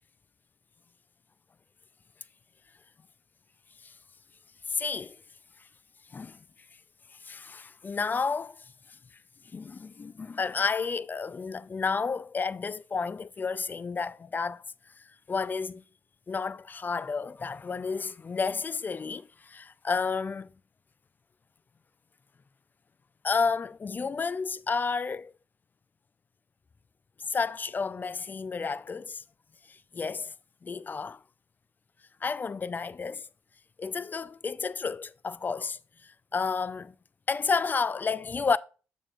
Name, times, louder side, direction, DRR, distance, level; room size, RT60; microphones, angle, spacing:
voice 1, 4.7-5.2 6.1-6.4 7.2-8.6 9.5-14.6 15.3-15.8 16.3-20.5 23.2-25.3 27.3-29.2 29.7-30.3 30.6-31.2 32.2-33.3 33.8-36.9 37.3-38.6, left 5 dB, 30° left, 0.3 m, -31 dB
7.3 x 6.8 x 2.4 m
supercardioid pair, 55°, 6 cm